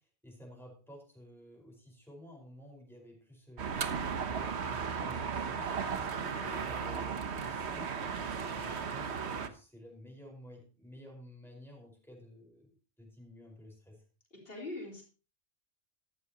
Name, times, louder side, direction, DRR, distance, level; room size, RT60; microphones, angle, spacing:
voice 1, 0.2-3.8 4.2-8.0 8.5-12.7 13.0-14.0, equal, ahead, -1 dB, 4.8 m, -53 dB
sound 1, 3.6-9.5, right 6 dB, 75° right, 1.3 m, -35 dB
voice 2, 6.3-6.6 8.4-8.7 14.3-15.0, left 2 dB, 55° left, -2 dB, 4.0 m, -44 dB
14.0 x 11.5 x 2.9 m, 0.37 s
omnidirectional pair, 1.2 m